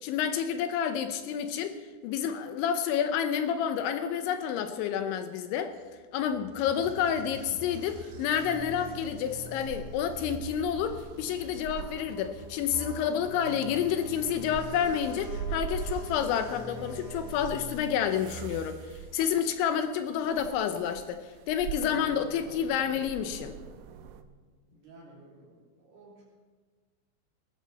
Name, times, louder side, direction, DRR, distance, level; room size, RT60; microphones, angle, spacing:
voice 1, 0.0-5.7 6.1-23.5, left 8 dB, 80° left, 8 dB, 2.8 m, -29 dB
sound 1, 6.1-19.1, right 3 dB, 65° right, 4.3 m, -45 dB
sound 2, 8.4-24.2, right 8 dB, 80° right, 3.0 m, -43 dB
Trumpet, 11.7-17.4, left 5 dB, 40° left, 3.2 m, -48 dB
voice 2, 24.7-26.2, right 2 dB, 45° right, -4 dB, 5.0 m, -54 dB
19.5 x 14.0 x 4.1 m, 1.5 s
omnidirectional pair, 6.0 m